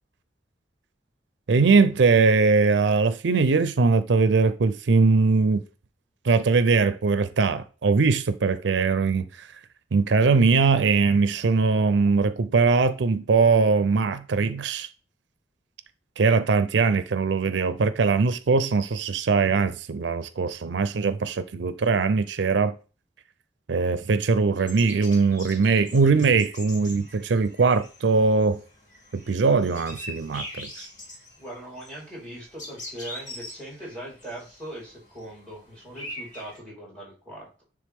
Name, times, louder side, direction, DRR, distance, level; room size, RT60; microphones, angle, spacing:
voice 1, 1.5-5.6 6.2-9.5 9.9-14.9 16.2-22.7 23.7-28.6 29.1-30.7, right 4 dB, 85° right, 0.5 m, -21 dB
sound 1, 24.6-36.6, left 1 dB, 45° left, 2.8 m, -43 dB
voice 2, 31.4-37.6, right 1 dB, 5° left, 3.9 m, -40 dB
9.8 x 3.5 x 3.5 m
head